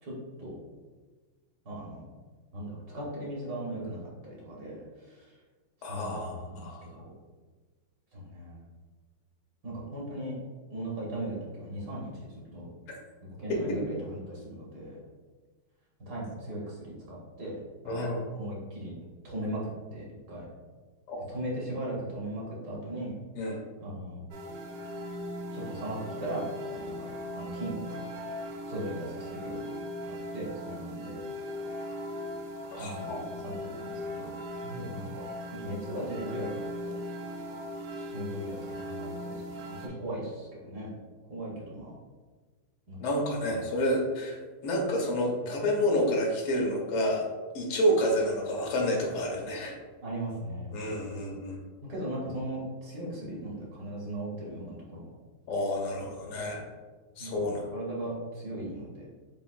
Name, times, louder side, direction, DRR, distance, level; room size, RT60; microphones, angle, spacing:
voice 1, 0.0-0.6 1.6-2.0 2.5-4.0 4.5-5.3 5.9-7.1 8.1-8.6 9.6-10.3 10.7-12.7 13.4-15.0 16.1-17.6 17.8-18.1 18.3-18.9 19.2-20.4 21.3-23.2 23.8-24.2 25.5-27.8 28.7-29.6 30.0-31.2 32.8-34.3 34.6-35.2 35.6-36.5 37.9-40.9 41.3-41.9 42.9-43.0 43.5-43.6 50.0-50.7 51.3-51.4 51.9-55.1 56.2-56.3 57.2-57.5 57.7-59.1, right 1 dB, 55° right, -5 dB, 1.5 m, -38 dB
voice 2, 5.8-6.8 13.5-13.8 17.9-18.2 21.1-21.2 23.4-23.6 32.7-33.2 43.0-47.2 47.6-49.8 50.7-51.6 55.5-56.6 57.2-57.7, equal, 90° left, -1 dB, 1.9 m, -29 dB
sound 1, 24.3-39.9, left 1 dB, 70° right, 1.2 m, -39 dB
7.3 x 2.5 x 2.4 m, 1.4 s
omnidirectional pair, 2.4 m